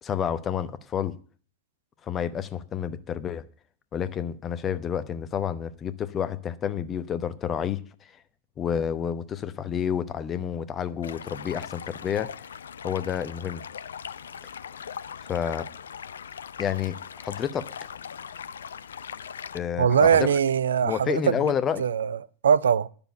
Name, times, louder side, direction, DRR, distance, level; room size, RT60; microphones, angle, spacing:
voice 1, 0.0-1.2 2.1-3.5 3.9-7.8 8.6-12.3 12.8-13.6 15.2-15.7 16.6-17.7 19.5-20.3 20.8-21.8, left 8 dB, 25° left, 0.9 m, -29 dB
Stream, 11.0-19.6, left 7 dB, 65° left, 0.5 m, -40 dB
voice 2, 19.8-22.9, right 7 dB, 65° right, 0.5 m, -22 dB
10.5 x 7.0 x 8.2 m
figure-of-eight pair, 90°, 0 cm